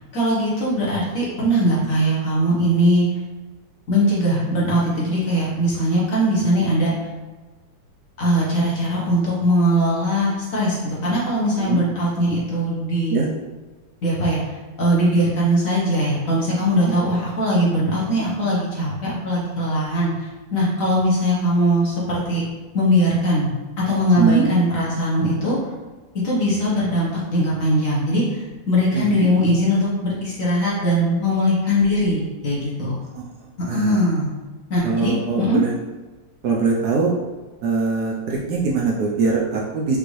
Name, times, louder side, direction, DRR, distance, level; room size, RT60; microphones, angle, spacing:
voice 1, 0.1-3.0 3.9-6.9 8.2-13.2 14.0-14.4 14.8-22.4 22.7-23.5 23.9-25.6 26.2-33.0 33.7-34.3 34.7-35.6, equal, 50° left, -6 dB, 1.5 m, -20 dB
voice 2, 24.1-24.5 28.9-29.1 33.1-33.2 33.7-34.0 34.8-35.7 36.4-37.1 37.6-40.0, right 4 dB, 65° right, -3 dB, 1.1 m, -22 dB
5.2 x 2.9 x 3.2 m, 1.3 s
omnidirectional pair, 2.0 m